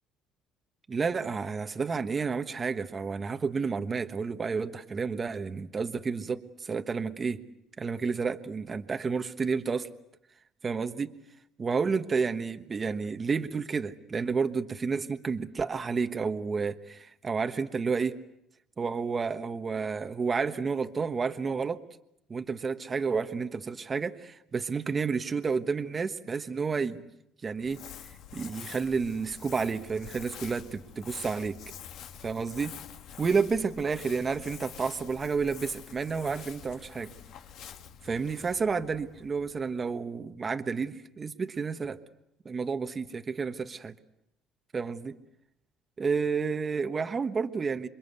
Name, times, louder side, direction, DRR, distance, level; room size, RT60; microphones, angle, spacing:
voice 1, 0.9-7.4 7.8-9.9 10.6-11.1 11.6-18.2 18.8-21.8 22.3-27.0 27.4-27.8 28.3-31.6 32.2-32.7 33.2-37.1 38.0-42.0 42.4-43.9 44.7-45.2 46.0-47.9, right 5 dB, 25° right, 8 dB, 1.2 m, -30 dB
Crumpling crinkling, 27.5-40.0, left 9 dB, 65° left, 2.0 m, -47 dB
28.0 x 23.5 x 8.2 m, 0.80 s
cardioid pair, 125°, 0 cm